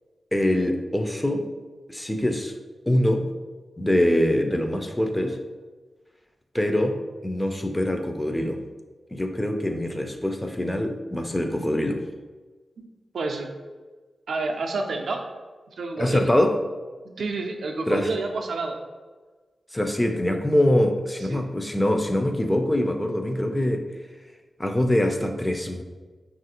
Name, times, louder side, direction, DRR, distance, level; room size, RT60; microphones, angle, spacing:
voice 1, 0.3-1.4 1.9-2.5 2.9-3.2 3.8-5.4 6.5-7.0 7.2-8.6 9.1-12.0 16.0-16.5 17.9-18.1 19.7-23.8 24.6-25.8, left 1 dB, 15° left, 5 dB, 0.3 m, -23 dB
voice 2, 13.1-13.5 14.3-15.2 15.8-16.3 17.0-18.8 21.3-21.4, right 3 dB, 85° right, 3 dB, 0.3 m, -29 dB
3.2 x 2.4 x 2.8 m, 1.3 s
cardioid pair, 65°, 0 cm